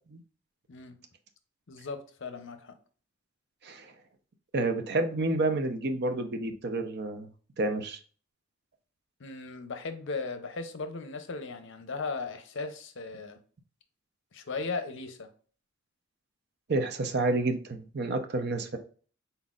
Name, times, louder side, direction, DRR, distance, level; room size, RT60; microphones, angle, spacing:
voice 1, 0.7-1.0 1.7-2.7 9.2-13.4 14.3-15.3, left 4 dB, 65° left, 0.7 m, -37 dB
voice 2, 4.5-7.3 7.6-8.0 16.7-18.8, right 2 dB, 55° right, 0.7 m, -29 dB
4.1 x 4.0 x 2.4 m
head